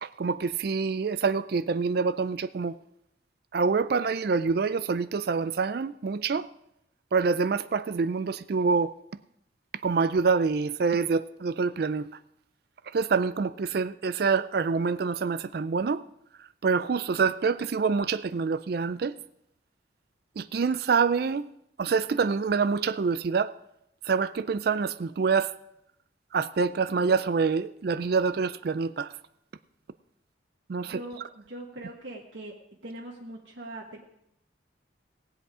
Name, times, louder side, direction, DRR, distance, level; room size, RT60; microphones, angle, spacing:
voice 1, 0.0-2.8 3.5-6.5 7.1-8.9 9.8-12.1 12.9-16.0 16.4-19.2 20.4-21.5 21.8-23.5 24.0-25.6 26.3-29.1 30.7-31.0, right 5 dB, 55° right, 0.4 m, -26 dB
voice 2, 30.8-32.5 32.8-34.0, right 1 dB, 75° right, 1.5 m, -41 dB
18.0 x 8.0 x 4.9 m
head